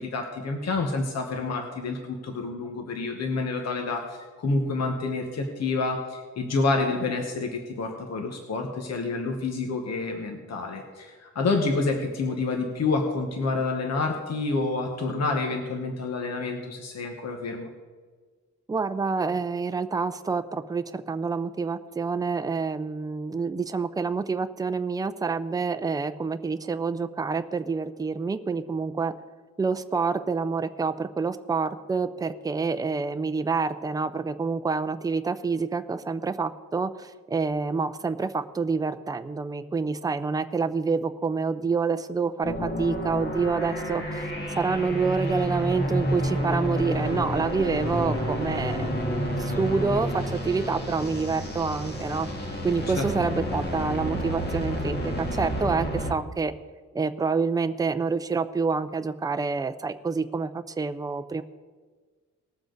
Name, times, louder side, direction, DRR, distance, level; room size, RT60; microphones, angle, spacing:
voice 1, 0.0-17.7 52.9-53.0, left 3 dB, 55° left, 3 dB, 1.3 m, -28 dB
voice 2, 18.7-29.1 29.6-49.0 49.4-52.3 52.6-56.5 56.9-61.4, right 4 dB, 10° right, 10 dB, 0.4 m, -27 dB
sound 1, 42.4-56.1, equal, 35° left, 1.8 m, -30 dB
19.5 x 7.4 x 3.9 m, 1.5 s
wide cardioid pair, 155°, 31 cm